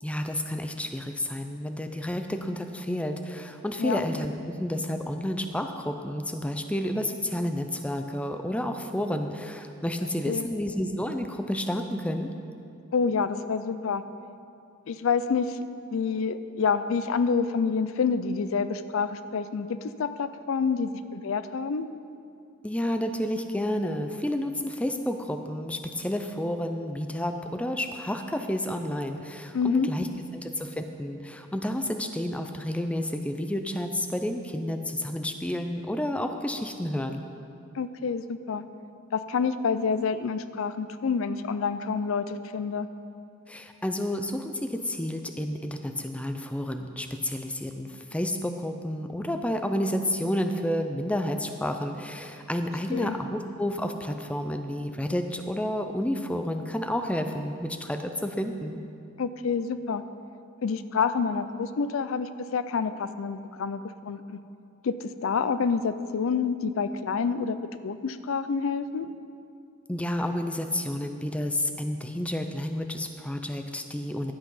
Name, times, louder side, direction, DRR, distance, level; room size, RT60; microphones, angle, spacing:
voice 1, 0.0-12.3 22.6-30.1 30.3-37.2 43.5-58.8 69.9-74.3, left 1 dB, 5° left, 6 dB, 0.4 m, -30 dB
voice 2, 12.9-14.0 14.9-15.6 15.9-21.9 29.5-29.9 37.7-38.6 39.1-42.9 52.9-53.2 59.2-60.0 60.6-64.4 64.8-67.6 67.8-69.1, left 5 dB, 70° left, 12 dB, 0.4 m, -28 dB
11.5 x 8.0 x 5.5 m, 2.6 s
head